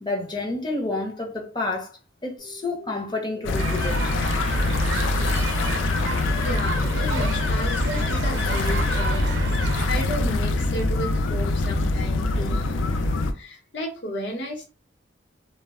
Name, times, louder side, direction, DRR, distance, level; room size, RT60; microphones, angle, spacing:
voice 1, 0.0-1.9 2.2-4.1, left 2 dB, 20° left, 0.6 m, -29 dB
sound 1, 2.4-11.7, equal, 45° left, 1.0 m, -43 dB
sound 2, 3.4-13.3, left 2 dB, 85° left, 0.4 m, -24 dB
sound 3, 3.6-9.9, right 4 dB, 70° right, 0.5 m, -33 dB
voice 2, 6.4-12.7 13.3-14.7, equal, 70° left, 0.9 m, -33 dB
2.1 x 2.0 x 3.4 m
head